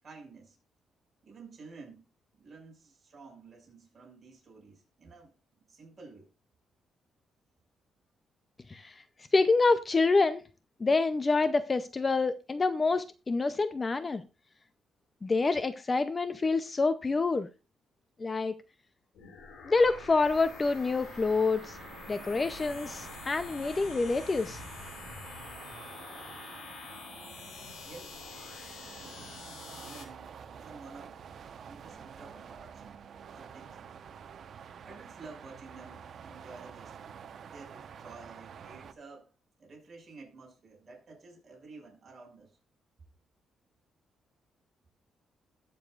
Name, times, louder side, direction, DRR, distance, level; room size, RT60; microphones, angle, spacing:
voice 1, 0.0-0.6 1.2-2.0 2.4-6.3 27.8-28.2 29.0-29.4 29.7-31.2 31.6-33.9 34.8-39.3 39.6-42.6, right 3 dB, 30° right, 6.1 m, -51 dB
voice 2, 9.3-10.4 10.8-14.2 15.2-17.5 18.2-18.5 19.6-21.8 22.1-24.6, left 3 dB, 25° left, 0.6 m, -27 dB
sound 1, 19.1-30.1, left 5 dB, 85° left, 3.7 m, -46 dB
sound 2, 19.7-38.9, right 7 dB, 50° right, 1.0 m, -49 dB
20.5 x 7.0 x 2.4 m
cardioid pair, 150°, 0 cm